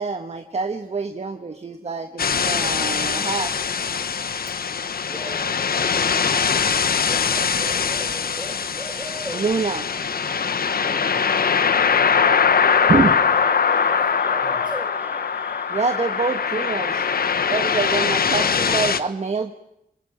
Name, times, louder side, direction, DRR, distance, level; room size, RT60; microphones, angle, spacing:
voice 1, 0.0-3.6 9.3-10.5 10.8-10.9 12.9-13.1 15.7-17.1 17.5-19.5, right 4 dB, 45° right, 7 dB, 1.4 m, -26 dB
sound 1, 2.2-19.0, left 6 dB, 85° left, 1.2 m, -22 dB
sound 2, 2.8-17.4, right 1 dB, 15° right, 2.0 m, -42 dB
voice 2, 5.1-8.6 10.8-14.8, right 2 dB, 30° right, 6 dB, 4.5 m, -42 dB
27.0 x 20.5 x 8.9 m, 0.82 s
wide cardioid pair, 110°, 15 cm